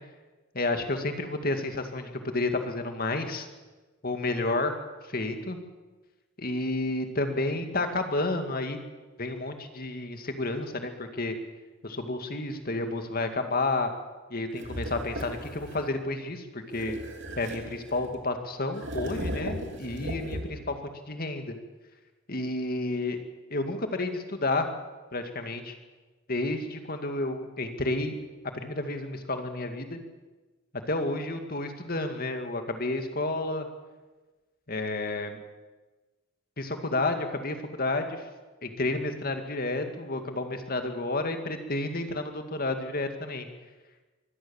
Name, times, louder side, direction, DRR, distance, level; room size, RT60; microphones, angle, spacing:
voice 1, 0.5-3.5 4.0-4.7 5.0-5.6 6.4-8.8 9.2-11.3 11.8-13.9 14.3-17.0 17.4-21.6 22.3-23.2 23.5-24.7 25.1-25.7 26.3-28.2 28.4-30.0 30.9-33.7 34.7-35.4 36.6-38.3 38.6-43.5, left 2 dB, 45° left, 6 dB, 2.3 m, -31 dB
sound 1, 14.6-15.9 16.7-18.2 18.7-20.7, equal, 60° right, 3.1 m, -37 dB
23.5 x 17.0 x 7.2 m, 1.2 s
head